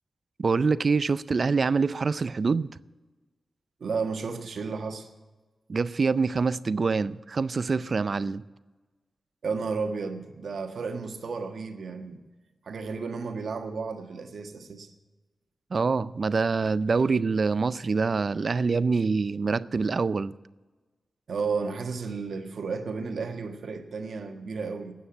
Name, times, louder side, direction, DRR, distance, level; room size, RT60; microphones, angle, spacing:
voice 1, 0.4-2.7 5.7-8.4 15.7-20.3, right 4 dB, 50° right, 0.4 m, -25 dB
voice 2, 3.8-5.1 9.4-12.2 12.6-14.9 21.3-24.9, right 4 dB, 75° right, 1.4 m, -33 dB
13.0 x 9.4 x 8.9 m
wide cardioid pair, 110°, 0 cm